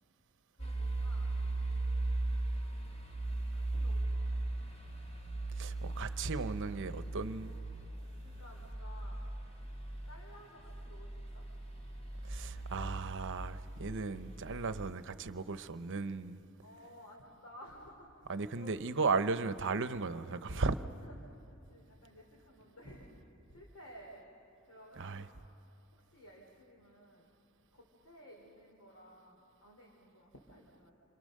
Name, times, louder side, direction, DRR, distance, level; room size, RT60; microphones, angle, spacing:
voice 1, 0.6-2.2 3.5-4.5 8.2-9.3 10.1-11.5 16.6-18.8 20.5-20.7 21.0-23.1 23.5-24.2 24.6-25.3 25.9-27.4 27.7-30.9, equal, 80° left, 3.4 m, -56 dB
sound 1, 0.6-14.9, right 2 dB, 30° left, 3.5 m, -38 dB
voice 2, 5.5-7.6 12.2-16.4 18.3-20.8 25.0-25.3, right 4 dB, 60° right, 0.8 m, -36 dB
28.5 x 26.5 x 6.6 m
head